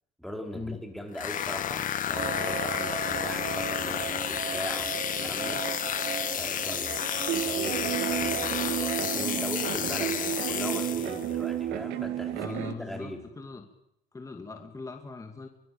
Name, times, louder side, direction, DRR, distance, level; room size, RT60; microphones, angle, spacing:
voice 1, 0.2-5.7 6.4-7.0 7.3-12.4 12.7-13.2, equal, ahead, 3 dB, 5.4 m, -40 dB
sound 1, 1.1-11.3, left 10 dB, 55° left, 1.6 m, -31 dB
sound 2, 2.1-9.4, right 7 dB, 35° right, 1.7 m, -36 dB
sound 3, 7.3-12.7, right 12 dB, 90° right, 2.3 m, -31 dB
voice 2, 12.3-13.7 14.1-15.5, left 3 dB, 20° left, 4 dB, 2.5 m, -40 dB
24.5 x 22.5 x 8.9 m, 0.80 s
cardioid pair, 110°, 17 cm